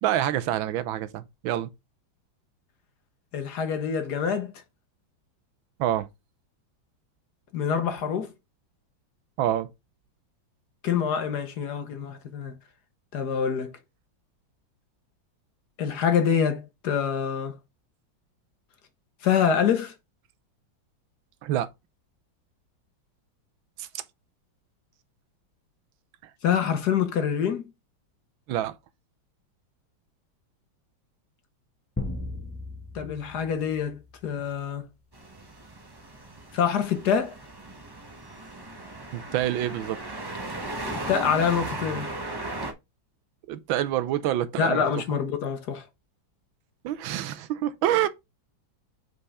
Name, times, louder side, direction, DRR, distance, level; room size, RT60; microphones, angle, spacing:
voice 1, 0.0-1.7 5.8-6.1 9.4-9.7 21.4-21.7 23.8-23.9 28.5-28.7 39.1-40.0 43.5-44.8 46.8-48.1, right 12 dB, 85° right, 1.4 m, -27 dB
voice 2, 3.3-4.5 7.5-8.3 10.8-12.6 13.1-13.7 15.8-17.6 19.2-19.9 26.4-27.6 32.9-34.9 36.5-37.3 40.8-42.2 44.6-45.8, left 7 dB, 60° left, 1.4 m, -26 dB
sound 1, 32.0-34.5, left 2 dB, 10° left, 0.8 m, -37 dB
sound 2, 35.1-42.7, right 2 dB, 25° right, 0.5 m, -37 dB
5.4 x 4.8 x 4.1 m
omnidirectional pair, 2.2 m